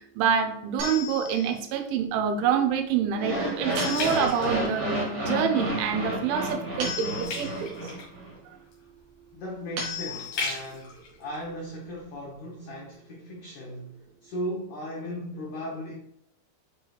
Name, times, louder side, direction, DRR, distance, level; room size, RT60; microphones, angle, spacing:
voice 1, 0.2-4.9 5.2-7.8, right 7 dB, 85° right, 3.2 m, -26 dB
sound 1, 0.8-1.7 3.8-4.6 6.8-7.7 9.8-10.7, left 3 dB, 60° right, 3.7 m, -36 dB
sound 2, 2.1-5.3 5.8-6.1 6.4-12.4 12.9-13.0, left 3 dB, 55° left, 2.8 m, -39 dB
sound 3, 3.1-8.3, right 1 dB, 45° right, 1.4 m, -30 dB
voice 2, 9.3-15.9, equal, 85° left, 1.7 m, -37 dB
9.6 x 4.5 x 2.4 m
omnidirectional pair, 5.3 m